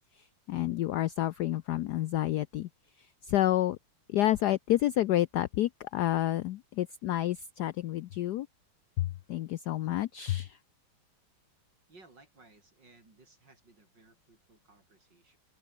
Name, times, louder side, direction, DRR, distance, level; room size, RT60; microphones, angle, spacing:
voice 1, 0.1-2.7 3.0-3.8 4.1-8.5 9.0-10.6, left 14 dB, 75° left, 0.9 m, -29 dB
voice 2, 11.9-15.4, right 3 dB, 55° right, 6.3 m, -60 dB
omnidirectional pair, 2.3 m